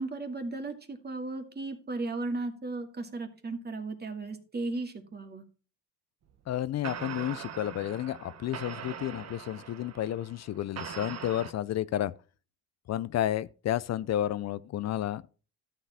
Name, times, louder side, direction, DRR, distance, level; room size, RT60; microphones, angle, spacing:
voice 1, 0.0-5.4, right 3 dB, 35° right, 2.3 m, -35 dB
sound 1, 6.3-6.5 6.8-11.5, right 8 dB, 55° right, 1.3 m, -42 dB
voice 2, 6.5-12.1 12.9-15.2, left 12 dB, 60° left, 0.5 m, -31 dB
12.5 x 7.2 x 4.2 m
cardioid pair, 90°, 30 cm